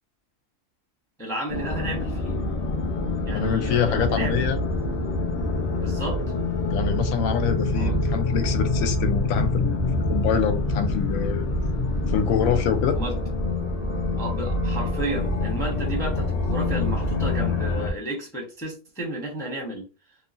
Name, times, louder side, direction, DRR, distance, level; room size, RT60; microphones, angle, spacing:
voice 1, 1.2-2.4 3.2-4.5 5.8-6.2 7.7-7.9 12.9-13.1 14.2-19.8, right 1 dB, 5° left, 0.6 m, -32 dB
sound 1, 1.5-17.9, left 2 dB, 50° left, 0.5 m, -26 dB
voice 2, 3.3-4.6 6.7-9.8 10.1-11.5 12.1-13.0, left 8 dB, 90° left, 1.0 m, -25 dB
3.0 x 2.3 x 2.5 m
omnidirectional pair, 1.4 m